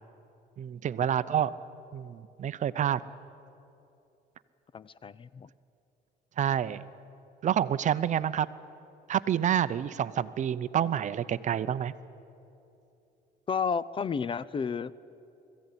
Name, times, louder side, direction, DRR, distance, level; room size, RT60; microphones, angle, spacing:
voice 1, 0.6-1.5 1.9-3.0 6.4-6.8 7.4-8.5 9.1-11.9, right 9 dB, 45° right, 15 dB, 0.7 m, -28 dB
voice 2, 4.7-5.5 13.5-14.9, left 6 dB, 30° left, 19 dB, 0.5 m, -32 dB
21.0 x 15.0 x 9.9 m, 2.8 s
cardioid pair, 110°, 17 cm